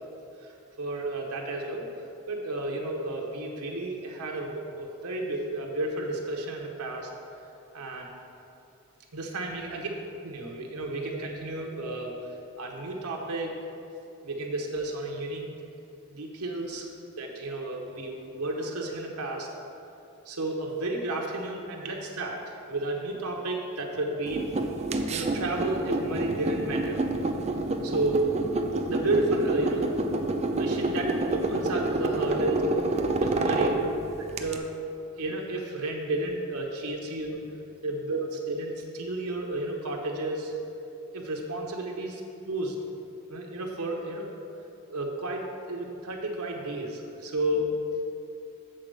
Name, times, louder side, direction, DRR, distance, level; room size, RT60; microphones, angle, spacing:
voice 1, 0.8-1.9 2.3-7.1 7.7-8.1 9.1-9.9 10.2-12.1 12.6-13.6 14.2-15.5 16.1-16.9 17.2-19.5 20.3-24.4 25.1-27.0 27.8-28.3 28.9-29.9 30.5-32.6 33.2-33.9 34.2-34.7 35.2-37.4 37.8-40.5 41.1-42.7 43.3-44.2 44.9-47.7, right 2 dB, 75° right, 0 dB, 0.9 m, -32 dB
sound 1, 24.3-34.6, right 2 dB, 30° right, 0.4 m, -28 dB
7.6 x 4.1 x 6.5 m, 2.7 s
head